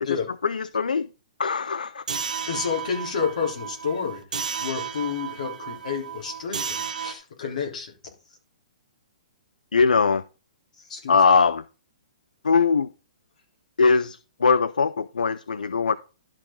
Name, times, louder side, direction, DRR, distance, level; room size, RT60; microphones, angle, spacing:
voice 1, 0.1-1.1 1.4-2.0 9.7-10.2 11.1-11.6 12.4-12.9 13.8-16.0, left 5 dB, 80° left, 16 dB, 0.4 m, -21 dB
sound 1, 2.1-7.1, right 7 dB, 75° right, 1.1 m, -33 dB
voice 2, 2.5-7.9 10.9-11.2, left 6 dB, 65° left, 0 dB, 3.4 m, -30 dB
12.0 x 4.9 x 3.7 m, 0.33 s
figure-of-eight pair, 125°, 4 cm